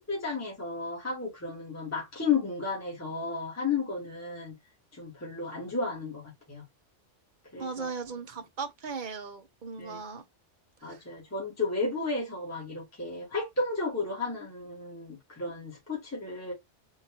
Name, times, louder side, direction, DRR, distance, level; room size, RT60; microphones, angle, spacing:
voice 1, 0.1-4.5 4.9-6.2 6.5-6.6 7.5-7.9 9.8-10.0 10.8-16.5, left 4 dB, 15° left, 1.3 m, -33 dB
voice 2, 7.6-10.2 10.8-11.0, right 5 dB, 45° right, 0.7 m, -37 dB
3.7 x 2.5 x 2.8 m
omnidirectional pair, 1.2 m